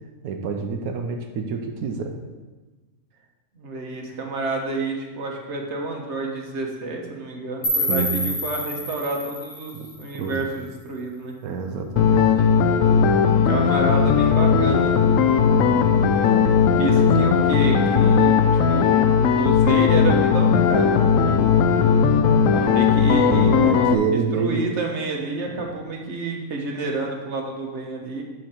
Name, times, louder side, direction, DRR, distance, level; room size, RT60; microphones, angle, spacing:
voice 1, 0.2-2.1 7.9-8.4 9.7-9.9 10.1-10.4 11.4-12.5 13.1-13.2 15.6-16.5 16.9-17.2 23.3-24.6 25.5-25.6, right 5 dB, 80° right, 4 dB, 1.2 m, -28 dB
voice 2, 3.5-11.3 13.2-15.1 16.8-21.7 22.5-28.2, right 3 dB, 50° right, 1 dB, 1.5 m, -29 dB
sound 1, 7.6-10.6, left 1 dB, 90° left, 1.8 m, -28 dB
sound 2, 12.0-24.0, left 6 dB, 70° left, 0.9 m, -17 dB
11.5 x 4.7 x 4.4 m, 1.3 s
omnidirectional pair, 1.6 m